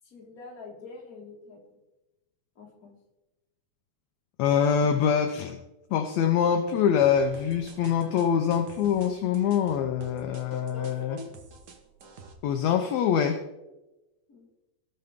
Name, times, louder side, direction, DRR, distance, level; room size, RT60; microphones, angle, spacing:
voice 1, 0.0-1.8 2.6-3.0 10.7-11.2 14.3-14.5, left 3 dB, 30° left, -1 dB, 2.1 m, -46 dB
voice 2, 4.4-5.6 5.9-11.2 12.4-13.4, left 8 dB, 75° left, 6 dB, 1.7 m, -24 dB
sound 1, 7.0-12.3, right 5 dB, 70° right, 0.9 m, -48 dB
17.5 x 6.6 x 3.6 m, 1.0 s
omnidirectional pair, 3.6 m